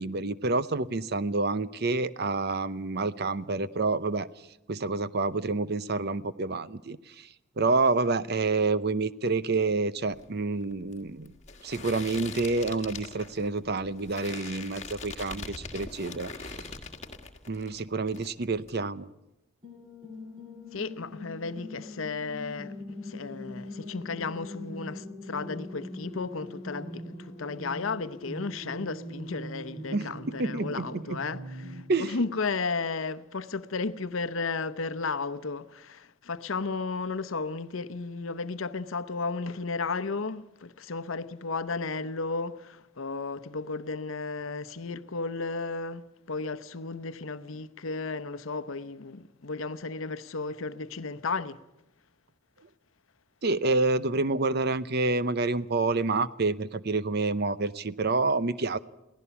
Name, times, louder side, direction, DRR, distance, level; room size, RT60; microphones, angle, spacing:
voice 1, 0.0-4.3 4.7-7.3 7.6-11.3 11.6-16.6 17.5-19.1 29.9-30.1 30.4-31.2 31.9-32.1 53.4-58.8, right 3 dB, 50° right, 0.7 m, -28 dB
sound 1, 10.1-17.8 18.1-18.7, left 4 dB, 35° left, 1.7 m, -42 dB
sound 2, 19.6-31.8, left 1 dB, 25° right, 4.3 m, -42 dB
voice 2, 20.7-51.6, left 4 dB, 70° left, 0.8 m, -34 dB
23.5 x 17.0 x 7.0 m
head